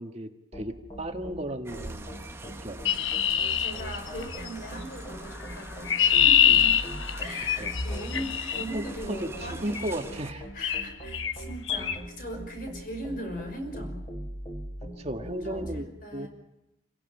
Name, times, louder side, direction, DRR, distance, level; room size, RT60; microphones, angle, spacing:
voice 1, 0.0-2.1 2.4-2.9 7.6-7.7 8.7-10.5 14.8-15.8 16.1-16.3, right 1 dB, 35° right, 5 dB, 1.6 m, -35 dB
sound 1, 0.5-15.8, right 1 dB, 30° left, 7.4 m, -41 dB
sound 2, 1.7-10.3, right 2 dB, 15° right, 1.1 m, -45 dB
Chirp tweet, 2.8-4.5 5.5-8.6 9.7-10.0 10.6-10.9 11.1-11.4 11.7-12.0, left 9 dB, 85° left, 1.1 m, -24 dB
voice 2, 3.6-6.9 7.2-9.9 10.5-14.1 15.3-16.3, equal, 50° left, 5 dB, 5.8 m, -39 dB
28.0 x 17.0 x 9.1 m, 0.96 s
head